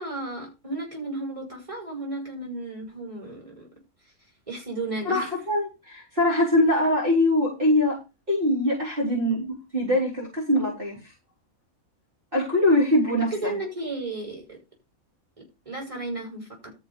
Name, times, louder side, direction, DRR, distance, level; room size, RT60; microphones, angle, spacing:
voice 1, 0.0-3.7 4.5-5.3 13.3-14.4 15.7-16.5, right 2 dB, 20° right, 0 dB, 5.7 m, -33 dB
voice 2, 5.0-8.0 8.3-11.1 12.3-13.5, left 1 dB, 40° right, -4 dB, 4.4 m, -23 dB
13.0 x 5.4 x 5.6 m, 0.27 s
omnidirectional pair, 1.5 m